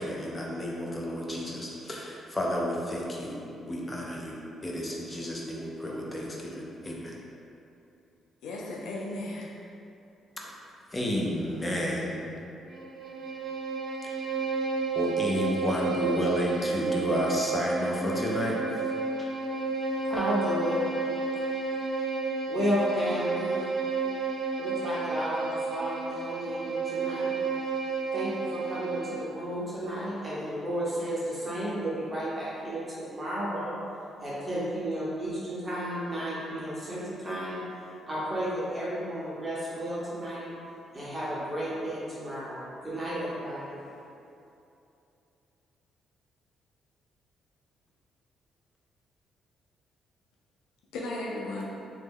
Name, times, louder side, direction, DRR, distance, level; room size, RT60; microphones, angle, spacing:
voice 1, 0.0-3.4 3.7-7.2 10.4-10.5 10.9-12.3 14.9-18.6 19.2-19.3, left 1 dB, 20° left, -3 dB, 0.5 m, -31 dB
voice 2, 8.4-9.6 50.9-51.6, left 2 dB, 90° left, -3 dB, 0.3 m, -35 dB
Bowed string instrument, 12.7-29.3, right 4 dB, 50° right, 0.5 m, -31 dB
voice 3, 19.9-20.8 22.5-23.7 24.6-27.3 28.1-33.8 34.2-37.6 38.1-40.5 40.9-43.8, equal, 20° right, -9 dB, 0.9 m, -32 dB
3.0 x 2.2 x 3.5 m, 2.7 s
cardioid pair, 90°, 0 cm